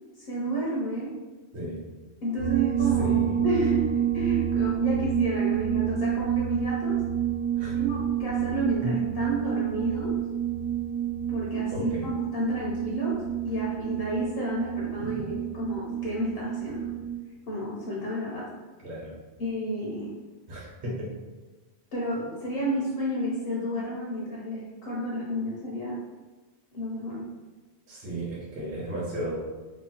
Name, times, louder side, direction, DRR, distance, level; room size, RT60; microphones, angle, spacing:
voice 1, 0.2-1.2 2.2-7.0 7.7-10.2 11.3-16.9 17.5-18.6 19.4-20.1 21.9-26.0 26.7-27.3, equal, 65° left, -4 dB, 0.8 m, -31 dB
sound 1, 2.4-17.2, right 10 dB, 85° right, 0.9 m, -28 dB
voice 2, 3.0-3.4 7.6-7.7 8.8-8.9 11.7-12.1 15.0-15.3 18.8-19.1 20.5-21.1 27.9-29.3, equal, 55° right, -6 dB, 1.0 m, -34 dB
2.9 x 2.1 x 2.8 m, 1.2 s
omnidirectional pair, 1.1 m